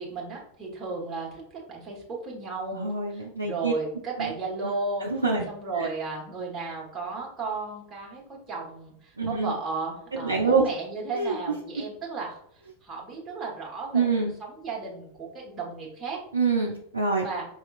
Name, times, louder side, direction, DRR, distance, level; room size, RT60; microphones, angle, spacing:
voice 1, 0.0-5.1 5.5-12.4 12.8-14.0 14.4-16.2 17.2-17.5, right 4 dB, 25° right, -4 dB, 1.2 m, -34 dB
voice 2, 2.7-3.7 4.2-4.3 5.0-5.4 5.7-5.9 9.2-9.5 10.1-10.7 11.1-11.4 13.9-14.3 16.3-17.3, right 4 dB, 85° right, -1 dB, 0.4 m, -25 dB
4.7 x 2.8 x 2.4 m, 0.70 s
figure-of-eight pair, 90°, 0 cm